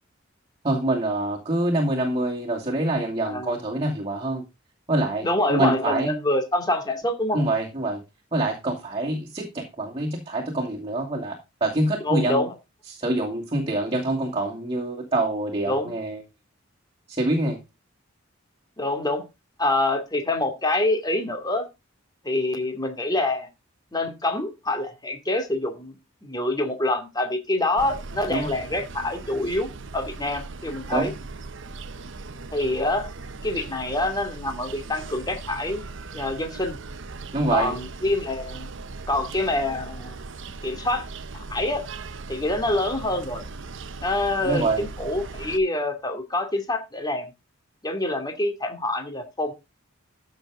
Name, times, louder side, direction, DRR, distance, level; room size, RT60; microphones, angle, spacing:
voice 1, 0.6-4.4 4.9-6.1 7.3-8.0 8.3-12.4 12.9-16.2 17.1-17.6 28.3-28.5 30.9-31.1 37.3-37.7 44.4-44.8, right 2 dB, 25° right, -1 dB, 2.5 m, -25 dB
voice 2, 3.2-3.6 5.2-7.4 12.0-12.5 15.7-15.9 18.8-19.2 19.6-21.7 22.2-23.5 23.9-26.0 26.2-31.1 32.5-33.1 33.4-35.9 36.1-36.8 37.5-38.7 39.1-40.2 40.6-41.1 41.5-41.8 42.3-43.4 44.0-47.3 47.8-49.5, left 1 dB, 20° left, 5 dB, 2.5 m, -26 dB
sound 1, 27.8-45.6, right 3 dB, 65° right, 1.0 m, -39 dB
14.0 x 6.7 x 3.7 m, 0.25 s
head